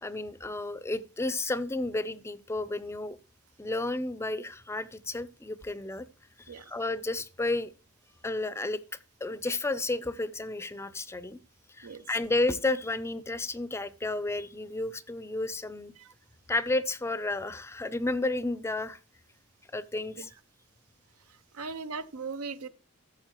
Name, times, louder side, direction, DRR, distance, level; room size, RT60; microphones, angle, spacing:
voice 1, 0.0-3.2 3.6-6.1 6.4-7.7 8.2-11.4 11.7-15.9 16.5-19.0 19.7-20.3, left 2 dB, 10° left, 0.4 m, -32 dB
voice 2, 21.3-22.7, right 4 dB, 85° right, 0.7 m, -39 dB
13.5 x 7.1 x 3.0 m
head